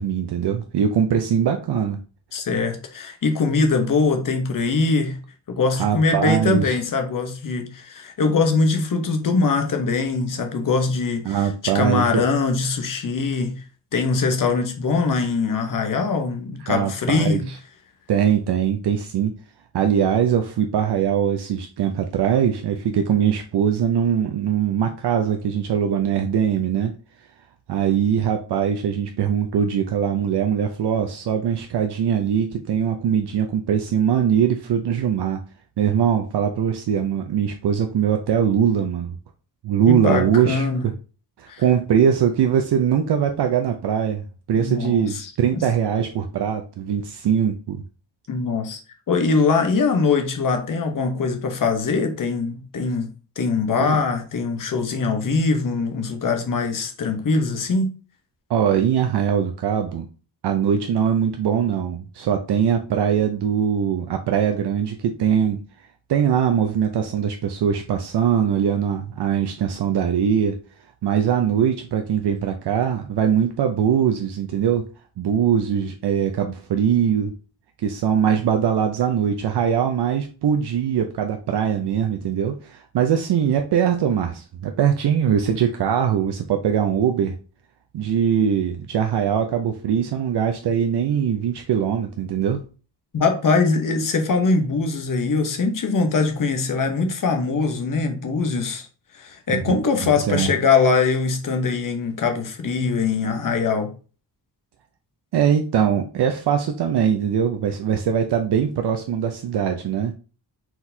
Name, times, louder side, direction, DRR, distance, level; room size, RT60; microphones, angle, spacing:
voice 1, 0.0-2.0 5.8-6.8 11.3-12.2 16.6-17.6 18.1-19.3 19.7-26.9 27.7-35.4 35.8-39.2 39.6-40.9 41.4-47.8 53.8-54.0 58.5-60.1 60.4-65.6 66.1-70.6 71.0-74.9 75.2-77.3 77.8-87.4 87.9-92.6 99.5-99.7 100.0-100.5 105.3-110.1, right 8 dB, 70° right, 0.6 m, -21 dB
voice 2, 2.3-5.2 5.5-11.4 11.7-13.6 13.9-17.4 39.9-40.9 41.5-41.6 44.5-45.6 48.3-48.8 49.1-53.1 53.4-57.9 93.1-98.9 99.1-103.9, left 4 dB, 50° left, 0.9 m, -22 dB
4.5 x 3.9 x 2.7 m
wide cardioid pair, 170°, 42 cm